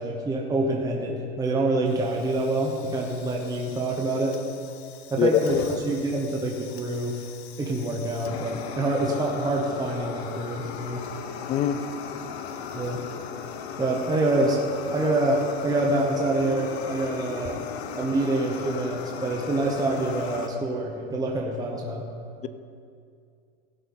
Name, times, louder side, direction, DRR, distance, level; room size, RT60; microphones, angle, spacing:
voice 1, 0.0-4.4 5.1-7.2 7.6-11.0 12.7-13.0 13.8-14.6 14.9-17.6 18.0-22.0, right 2 dB, 10° right, -1 dB, 1.0 m, -26 dB
Fire, 1.9-20.5, left 7 dB, 80° left, 1.0 m, -38 dB
voice 2, 5.2-5.8 11.5-11.8, left 9 dB, 20° left, 12 dB, 0.3 m, -23 dB
17.0 x 6.8 x 3.9 m, 2.3 s
supercardioid pair, 130°, 32 cm